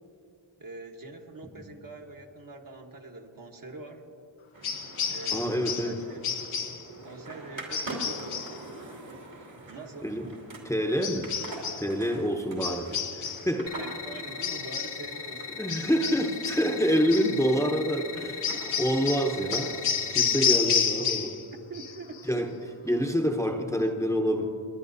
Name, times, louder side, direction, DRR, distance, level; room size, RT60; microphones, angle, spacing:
voice 1, 0.6-4.0 5.1-6.2 7.0-8.5 9.7-10.1 12.9-13.3 13.6-15.9 18.5-18.9 21.7-22.5, right 3 dB, 45° right, 1 dB, 1.3 m, -44 dB
sound 1, 4.5-20.6, right 2 dB, 70° right, 2.8 m, -45 dB
sound 2, 4.6-6.0 6.2-6.9 7.7-8.6 11.0-11.9 12.6-13.5 14.4-15.0 15.7-16.7 17.1-17.4 18.4-21.5 21.7-22.2, left 7 dB, 85° left, 1.0 m, -30 dB
voice 2, 5.3-6.0 10.0-10.3 10.6-11.3 11.8-12.9 13.4-13.7 15.6-18.4 18.8-19.8 20.1-21.4 22.2-22.5 22.8-24.5, equal, 5° left, 2 dB, 1.0 m, -27 dB
sound 3, 13.7-20.5, left 6 dB, 60° left, 0.7 m, -39 dB
29.0 x 10.0 x 2.7 m, 2.7 s
cardioid pair, 50°, 47 cm